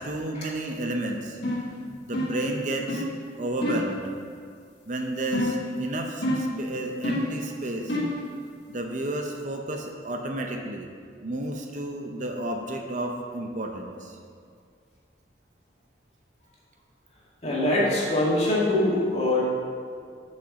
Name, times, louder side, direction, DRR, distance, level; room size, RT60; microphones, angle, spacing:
voice 1, 0.0-1.4 2.1-3.0 3.4-4.1 4.9-8.0 8.7-10.9 11.2-14.2, right 1 dB, 45° right, 2 dB, 0.7 m, -31 dB
sound 1, 1.4-1.7 2.1-2.5 2.9-3.1 3.6-3.9 5.3-5.7 6.2-6.6 7.0-7.4 7.9-8.2, left 1 dB, 70° left, 1.4 m, -27 dB
voice 2, 17.4-19.4, left 1 dB, 35° left, -6 dB, 2.3 m, -23 dB
6.7 x 6.4 x 6.1 m, 2.2 s
head